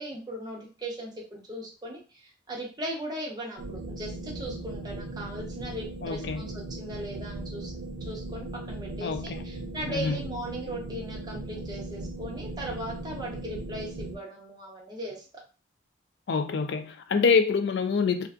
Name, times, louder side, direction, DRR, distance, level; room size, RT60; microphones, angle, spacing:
voice 1, 0.0-7.7 8.0-15.2, equal, 20° right, 0.7 m, -38 dB
Waldord Nave space sound, 3.6-14.2, right 2 dB, 60° right, 0.3 m, -38 dB
voice 2, 6.0-6.5 9.0-9.4 9.9-10.2 16.3-18.3, left 5 dB, 60° left, 0.3 m, -26 dB
2.5 x 2.3 x 2.3 m
head